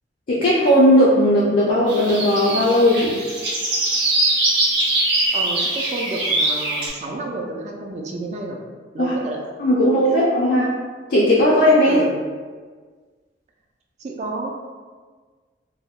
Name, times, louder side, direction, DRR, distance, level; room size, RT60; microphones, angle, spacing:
voice 1, 0.3-3.2 9.0-9.1 9.6-10.7 11.1-12.0, equal, 50° left, -6 dB, 0.4 m, -16 dB
sound 1, 1.9-6.9, right 2 dB, 70° right, 0.9 m, -22 dB
voice 2, 5.3-8.6 8.9-9.4 10.1-10.2 11.8-12.2 14.0-14.5, right 2 dB, 40° right, 0 dB, 0.4 m, -29 dB
3.4 x 2.1 x 2.3 m, 1.5 s
head